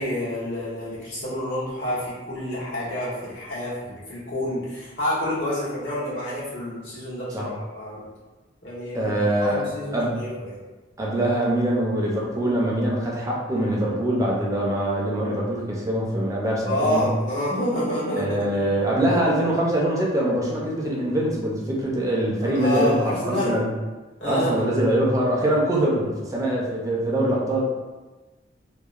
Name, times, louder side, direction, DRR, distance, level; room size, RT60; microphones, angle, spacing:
voice 1, 0.0-8.0 8.6-9.1 9.5-10.6 16.7-18.4 22.4-23.5 24.2-24.7, left 1 dB, 85° left, -9 dB, 1.0 m, -28 dB
voice 2, 8.9-9.6 9.9-10.2 11.0-17.0 18.2-23.7 24.2-27.6, right 1 dB, 20° right, -3 dB, 0.4 m, -23 dB
2.8 x 2.0 x 2.3 m, 1.2 s
head